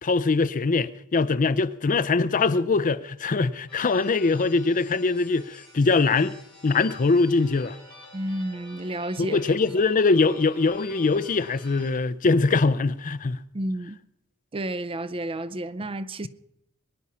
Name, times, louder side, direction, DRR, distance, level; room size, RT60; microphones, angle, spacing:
voice 1, 0.0-6.3 6.6-7.8 9.2-13.4, left 3 dB, 35° left, 0.5 m, -22 dB
sound 1, 3.7-11.9, left 1 dB, 5° left, 5.8 m, -49 dB
voice 2, 8.1-9.4 13.5-14.0 14.5-16.3, right 1 dB, 25° right, 0.5 m, -31 dB
22.5 x 9.7 x 5.6 m
head